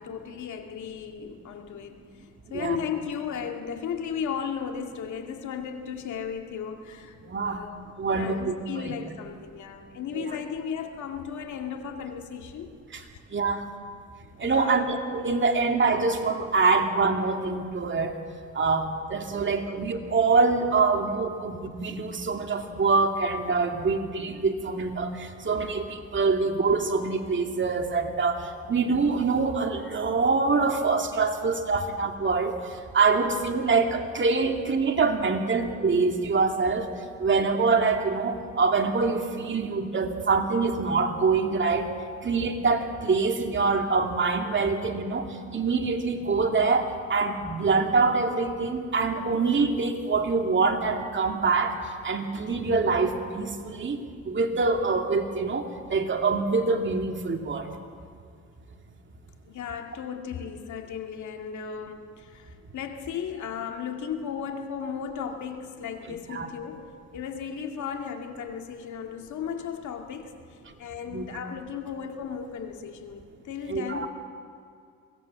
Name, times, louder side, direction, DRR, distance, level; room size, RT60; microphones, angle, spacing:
voice 1, 0.0-7.2 7.4-7.8 8.1-12.7 14.4-14.8 59.5-74.1, left 7 dB, 75° left, 4 dB, 2.2 m, -35 dB
voice 2, 7.2-7.6 8.0-8.9 10.1-10.3 12.9-13.0 13.3-13.6 14.4-18.2 18.5-36.9 37.2-41.9 42.2-54.0 54.2-57.7 66.1-66.5 71.1-71.3 73.7-74.1, right 4 dB, 40° right, 4 dB, 2.5 m, -25 dB
23.5 x 18.0 x 7.6 m, 2.2 s
cardioid pair, 90°, 30 cm